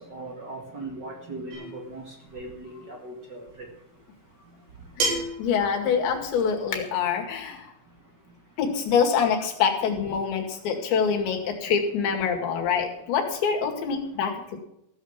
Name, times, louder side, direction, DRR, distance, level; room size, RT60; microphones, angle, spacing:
voice 1, 0.1-3.4, right 2 dB, 50° right, 1 dB, 1.3 m, -39 dB
sound 1, 1.5-1.9 3.4-3.5 5.0-5.5, right 2 dB, 90° right, 6.6 m, -28 dB
voice 2, 5.0-7.7 8.6-14.6, left 6 dB, 80° left, 1 dB, 4.4 m, -25 dB
15.5 x 7.5 x 7.3 m, 0.78 s
omnidirectional pair, 5.1 m